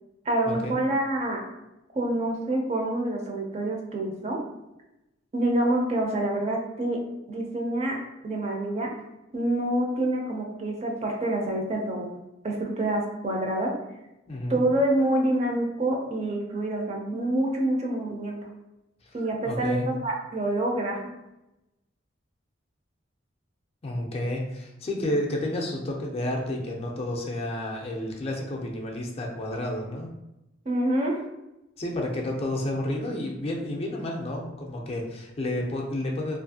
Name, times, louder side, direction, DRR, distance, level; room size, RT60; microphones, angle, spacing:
voice 1, 0.3-1.4 1.9-4.4 5.3-7.0 7.3-8.0 8.2-8.9 9.3-12.1 12.4-13.7 14.5-18.4 19.1-21.1 30.7-31.2, right 1 dB, 35° right, 0 dB, 0.4 m, -27 dB
voice 2, 14.3-14.6 19.4-19.9 23.8-30.1 31.8-36.4, left 1 dB, 30° left, 0 dB, 0.4 m, -30 dB
2.6 x 2.4 x 2.6 m, 0.93 s
head